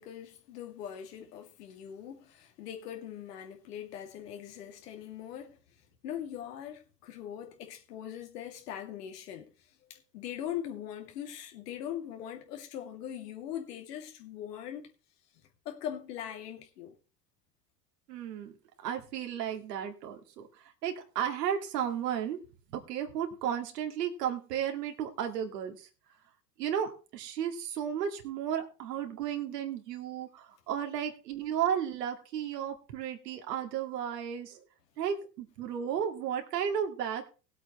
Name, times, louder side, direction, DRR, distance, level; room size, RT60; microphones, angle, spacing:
voice 1, 0.0-5.6 6.0-9.5 9.9-14.9 15.6-16.9, left 10 dB, 70° left, 2.5 m, -41 dB
voice 2, 18.1-18.5 18.8-20.4 20.8-22.4 22.7-25.8 26.6-34.6 35.0-37.3, right 9 dB, 70° right, 2.3 m, -34 dB
20.0 x 8.1 x 3.1 m
hypercardioid pair, 80°, 49 cm